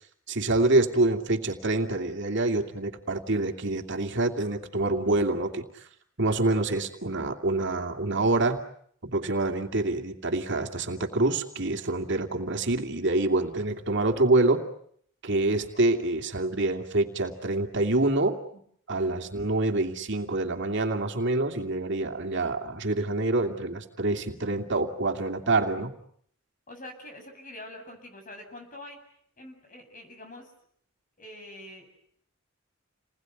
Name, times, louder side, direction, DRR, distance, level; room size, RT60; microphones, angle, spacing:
voice 1, 0.3-5.6 6.2-8.6 9.0-14.6 15.2-18.4 18.9-25.9, right 2 dB, 60° right, 4 dB, 2.7 m, -26 dB
voice 2, 26.7-29.0 29.4-30.5 31.2-31.9, left 1 dB, 40° left, 5 dB, 7.8 m, -45 dB
29.5 x 21.0 x 9.3 m, 0.66 s
head